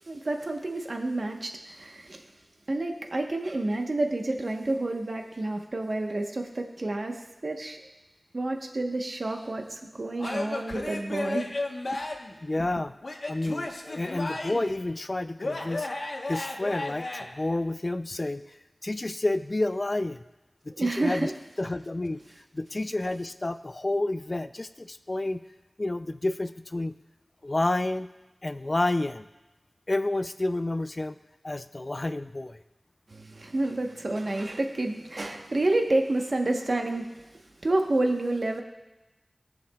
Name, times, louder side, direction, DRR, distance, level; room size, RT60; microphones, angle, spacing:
voice 1, 0.1-2.3 2.7-7.8 8.3-11.5 12.6-12.7 20.7-21.3 33.1-37.3 37.6-38.6, right 2 dB, 65° right, 3 dB, 1.0 m, -29 dB
Male speech man speaking / Yell / Laughter, 10.2-12.3 13.0-14.7 15.4-17.2, left 2 dB, 80° left, 1.1 m, -33 dB
voice 2, 12.4-12.9 13.3-15.9 16.3-18.4 18.8-20.2 20.7-21.3 21.6-22.2 22.5-25.4 25.8-26.9 27.4-28.1 28.4-29.2 29.9-31.1 31.4-32.6, left 2 dB, 45° left, 10 dB, 0.4 m, -29 dB
20.0 x 7.0 x 2.3 m, 1.0 s
wide cardioid pair, 50°, 0 cm